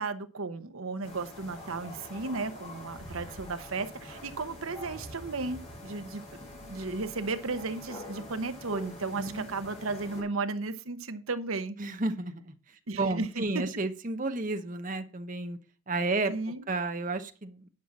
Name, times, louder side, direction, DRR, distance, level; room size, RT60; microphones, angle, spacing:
voice 1, 0.0-11.8 12.9-13.4 16.3-16.6, right 3 dB, 75° right, 1.0 m, -34 dB
sound 1, 1.0-10.2, left 1 dB, 30° left, 3.8 m, -45 dB
voice 2, 9.2-9.5 11.8-12.5 13.0-15.6 15.9-17.7, right 2 dB, 35° right, 0.9 m, -32 dB
10.0 x 5.8 x 6.0 m
head